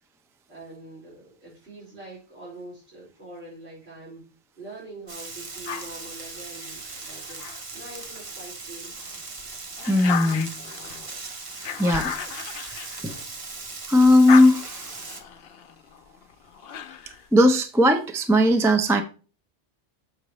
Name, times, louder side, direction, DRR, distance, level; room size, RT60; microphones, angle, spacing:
voice 1, 0.5-4.2 4.5-9.0, right 2 dB, 70° right, -8 dB, 4.8 m, -44 dB
Frying (food), 5.1-15.2, right 3 dB, 35° right, 0.8 m, -39 dB
sound 1, 5.6-8.3 8.8-13.7 14.0-17.3, left 8 dB, 65° left, 0.8 m, -36 dB
voice 2, 9.9-10.5 11.8-12.1 13.9-14.9 17.3-19.0, left 1 dB, 5° right, 7 dB, 0.4 m, -18 dB
6.7 x 6.6 x 3.1 m, 0.36 s
omnidirectional pair, 1.1 m